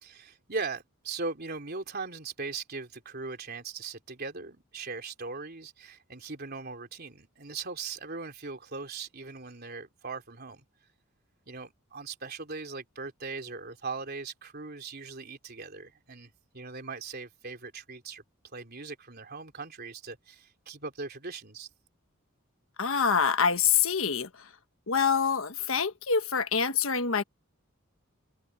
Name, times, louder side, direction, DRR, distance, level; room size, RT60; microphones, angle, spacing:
voice 1, 0.0-10.6 11.5-18.2 18.5-21.7, right 4 dB, 50° right, 3.6 m, -39 dB
voice 2, 22.8-24.3 24.9-27.2, left 6 dB, 70° left, 1.3 m, -25 dB
open air
head